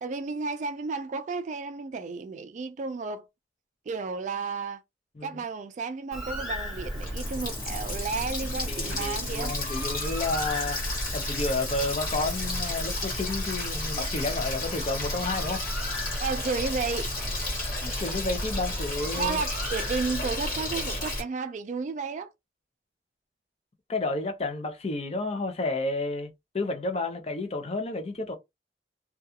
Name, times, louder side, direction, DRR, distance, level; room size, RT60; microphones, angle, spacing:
voice 1, 0.0-3.3 3.9-4.8 5.2-9.5 16.2-17.1 19.2-22.3, right 4 dB, 45° right, 0.3 m, -32 dB
Bird, 6.1-21.2, equal, ahead, 0.9 m, -38 dB
Water tap faucet, 6.8-21.2, left 1 dB, 50° left, 1.3 m, -32 dB
voice 2, 8.7-10.8 11.1-15.6 17.8-19.4 23.9-28.3, left 2 dB, 35° left, 0.5 m, -31 dB
2.3 x 2.3 x 2.7 m
head